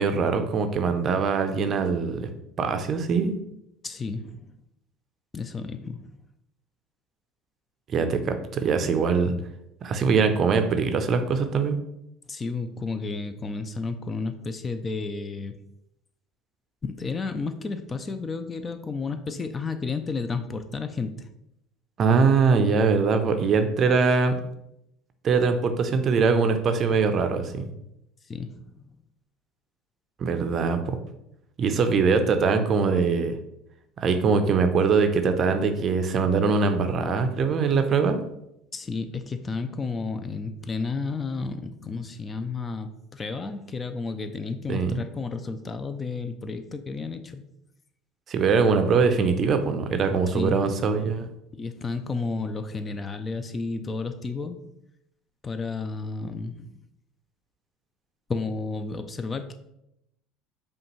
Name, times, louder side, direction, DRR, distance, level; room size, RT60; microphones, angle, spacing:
voice 1, 0.0-2.3 2.6-3.4 7.9-9.3 9.8-11.8 22.0-24.4 25.2-27.7 30.2-31.0 31.6-33.4 34.0-38.2 44.7-45.0 48.3-51.3, right 5 dB, 45° right, 8 dB, 0.5 m, -22 dB
voice 2, 3.8-4.6 5.3-6.1 12.3-15.5 16.8-21.3 28.3-28.9 38.7-47.4 50.3-50.7 51.5-54.7 55.4-56.8 58.3-59.5, left 4 dB, 30° left, 9 dB, 0.4 m, -32 dB
5.1 x 2.4 x 3.0 m, 0.83 s
hypercardioid pair, 75°, 0 cm